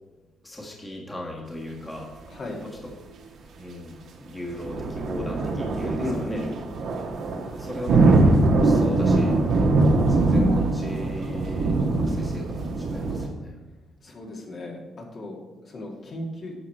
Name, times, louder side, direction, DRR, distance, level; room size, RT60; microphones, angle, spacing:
voice 1, 0.4-2.1 2.6-2.7 3.6-3.9 4.3-6.4 7.6-8.0 8.4-9.4 10.1-12.4 12.9-13.5, left 1 dB, 15° left, -2 dB, 1.6 m, -37 dB
voice 2, 2.3-2.6 6.0-6.5 14.0-16.5, left 2 dB, 55° left, -1 dB, 2.2 m, -35 dB
sound 1, 4.5-13.3, right 2 dB, 70° right, 1.3 m, -22 dB
9.7 x 6.4 x 4.4 m, 1.1 s
cardioid pair, 90°, 0 cm